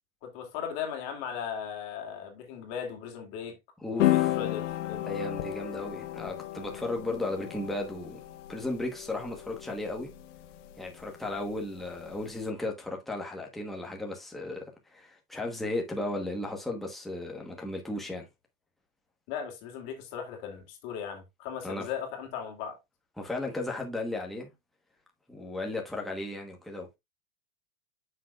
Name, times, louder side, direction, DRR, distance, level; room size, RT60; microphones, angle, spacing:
voice 1, 0.2-3.6 3.9-5.2 19.3-22.8, left 8 dB, 35° left, 2.7 m, -38 dB
voice 2, 3.8-4.4 5.0-8.2 8.5-10.1 10.8-18.3 21.6-21.9 23.2-24.5 25.3-27.0, left 2 dB, ahead, 1.1 m, -35 dB
sound 1, 4.0-12.4, left 15 dB, 55° left, 1.1 m, -33 dB
9.2 x 6.5 x 2.4 m
supercardioid pair, 165°, 42 cm